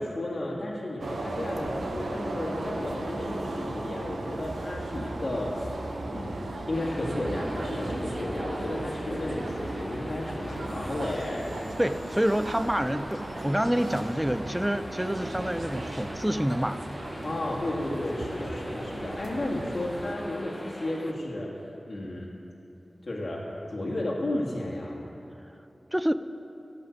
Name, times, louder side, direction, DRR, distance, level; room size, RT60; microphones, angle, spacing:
voice 1, 0.0-5.7 6.1-6.4 6.7-11.5 17.2-21.5 21.9-22.3 23.0-23.4 23.7-25.0, left 1 dB, 60° left, -4 dB, 2.0 m, -33 dB
sound 1, 1.0-20.1, right 2 dB, 85° right, 1.0 m, -36 dB
sound 2, 6.7-21.1, left 1 dB, 15° left, 1.0 m, -43 dB
voice 2, 11.8-16.8 25.9-26.1, equal, 10° right, 12 dB, 0.5 m, -27 dB
13.0 x 5.8 x 9.3 m, 2.9 s
wide cardioid pair, 50°, 0 cm